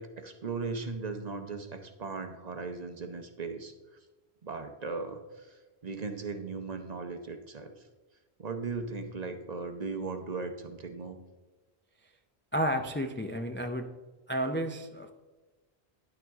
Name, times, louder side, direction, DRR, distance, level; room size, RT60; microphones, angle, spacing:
voice 1, 0.0-3.7 4.4-7.7 8.4-11.2, right 4 dB, 45° right, 7 dB, 0.8 m, -38 dB
voice 2, 12.5-13.9 14.3-15.1, equal, 20° left, 5 dB, 0.3 m, -31 dB
10.5 x 9.2 x 3.5 m, 1.2 s
omnidirectional pair, 1.1 m